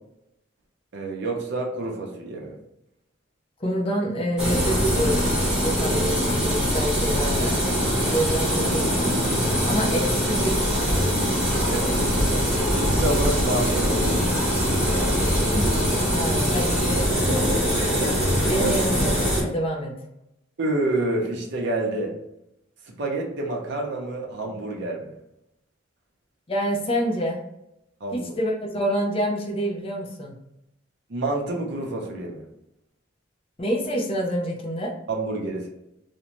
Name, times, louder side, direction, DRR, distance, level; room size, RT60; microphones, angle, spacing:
voice 1, 0.9-2.5 11.7-12.0 12.7-14.3 18.6-18.7 20.6-22.1 22.9-25.1 28.0-28.3 31.1-32.4 35.1-35.7, right 2 dB, 65° right, -1 dB, 0.6 m, -28 dB
voice 2, 3.6-5.4 5.6-7.6 8.1-9.2 9.6-11.1 15.5-15.7 16.1-17.5 18.5-20.0 26.5-27.4 28.1-30.4 33.6-34.9, equal, 30° left, 1 dB, 0.5 m, -27 dB
sound 1, 4.4-19.4, equal, 5° right, 0.9 m, -22 dB
2.5 x 2.1 x 2.9 m, 0.84 s
head